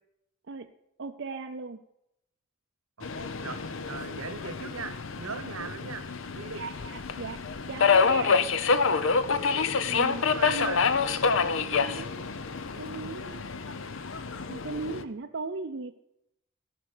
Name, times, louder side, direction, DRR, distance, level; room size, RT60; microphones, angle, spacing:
voice 1, 1.0-1.8 5.6-5.7 6.5-7.4 7.7-8.4 9.8-10.8 11.6-12.3 12.8-13.4 14.5-16.0, right 4 dB, 50° right, 4 dB, 0.5 m, -38 dB
Subway metro underground, 3.0-15.0, left 5 dB, 60° left, 0.7 m, -27 dB
voice 2, 3.0-6.0 6.3-6.6 10.3-10.8, right 5 dB, 70° right, 12 dB, 1.1 m, -39 dB
14.5 x 6.2 x 6.6 m, 0.80 s
head